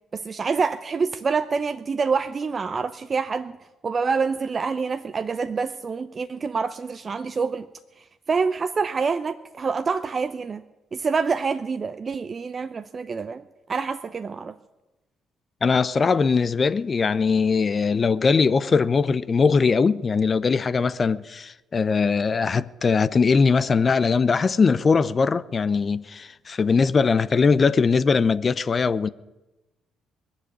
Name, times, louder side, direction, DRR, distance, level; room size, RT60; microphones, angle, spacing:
voice 1, 0.1-3.6 3.8-7.7 8.0-10.6 10.9-13.4 13.7-14.6, right 5 dB, 40° right, 0.6 m, -26 dB
voice 2, 15.6-29.1, left 5 dB, 40° left, 0.6 m, -21 dB
20.0 x 7.4 x 9.7 m
hypercardioid pair, 50°, 0 cm